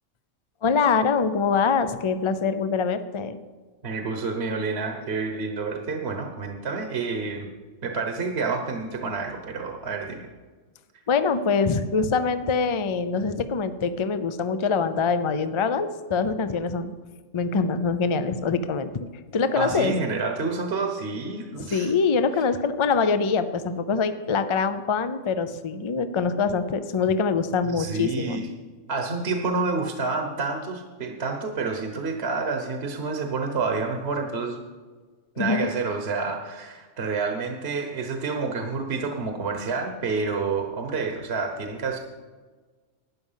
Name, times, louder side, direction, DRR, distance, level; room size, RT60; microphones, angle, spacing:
voice 1, 0.6-3.4 11.1-16.9 17.3-19.1 19.3-19.9 21.7-28.4 35.4-35.7, left 5 dB, 40° left, 11 dB, 0.4 m, -24 dB
voice 2, 3.8-7.5 7.8-10.3 19.6-21.9 27.6-28.5 28.9-34.6 35.4-42.0, right 4 dB, 55° right, 4 dB, 1.3 m, -29 dB
12.5 x 9.4 x 5.6 m, 1.4 s
omnidirectional pair, 1.3 m